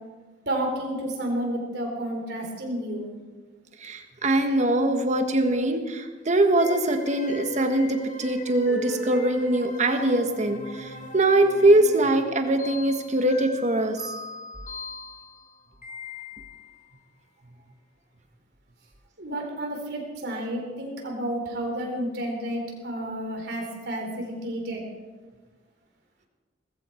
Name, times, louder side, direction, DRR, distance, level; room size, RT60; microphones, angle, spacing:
voice 1, 0.5-3.1 19.2-24.8, right 1 dB, 65° right, 1 dB, 3.6 m, -31 dB
voice 2, 3.8-14.0, right 1 dB, 40° right, 6 dB, 1.6 m, -22 dB
sound 1, 6.6-16.8, left 1 dB, 45° left, 1.9 m, -39 dB
19.5 x 15.5 x 4.5 m, 1.3 s
head